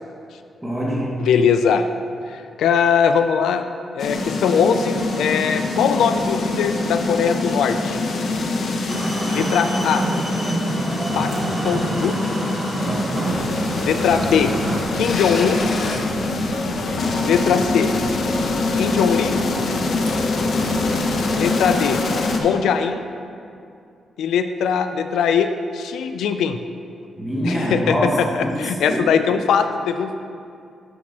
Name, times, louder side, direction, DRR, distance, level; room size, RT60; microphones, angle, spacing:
voice 1, 0.6-1.2 27.2-29.0, equal, 10° right, -6 dB, 1.8 m, -24 dB
voice 2, 1.2-1.8 2.3-3.6 3.9-8.0 9.3-10.0 11.2-11.3 11.6-12.2 13.9-14.5 14.9-15.6 17.2-17.9 18.7-19.4 21.3-22.0 22.4-23.0 24.2-25.5 25.7-26.6 27.4-28.3 28.6-30.1, left 7 dB, 90° left, 9 dB, 0.3 m, -20 dB
sound 1, 4.0-22.4, left 3 dB, 65° left, 0.8 m, -24 dB
sound 2, 8.9-14.8, right 1 dB, 30° right, 1.2 m, -26 dB
sound 3, 13.3-21.5, right 2 dB, 85° right, 0.8 m, -36 dB
11.5 x 5.9 x 2.9 m, 2.5 s
cardioid pair, 85°, 0 cm